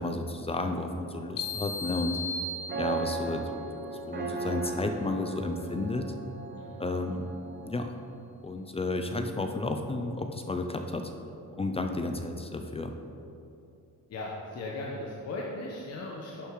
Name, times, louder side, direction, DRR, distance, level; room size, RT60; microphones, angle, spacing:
voice 1, 0.0-2.2 2.7-3.5 3.9-6.1 6.8-7.3 7.7-8.0 8.4-11.1 11.6-12.9, left 2 dB, 15° left, 5 dB, 0.5 m, -32 dB
sound 1, 1.0-8.1, right 4 dB, 30° right, 0.9 m, -38 dB
sound 2, 1.4-3.3, left 3 dB, 75° left, 1.1 m, -36 dB
voice 2, 14.1-16.5, left 2 dB, 45° left, -3 dB, 1.2 m, -37 dB
11.0 x 6.9 x 4.8 m, 2.8 s
cardioid pair, 160°, 34 cm